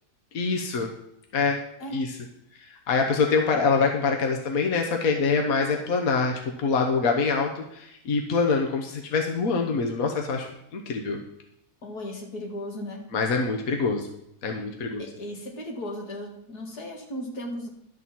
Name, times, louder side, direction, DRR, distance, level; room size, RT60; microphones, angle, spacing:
voice 1, 0.3-0.9 1.3-1.6 1.9-2.1 2.9-6.3 6.6-11.2 13.1-14.1 14.4-15.0, left 4 dB, 65° left, 2 dB, 1.4 m, -25 dB
voice 2, 11.8-13.1 15.0-17.7, equal, 90° left, 1 dB, 2.4 m, -36 dB
12.0 x 4.2 x 7.5 m, 0.79 s
omnidirectional pair, 1.6 m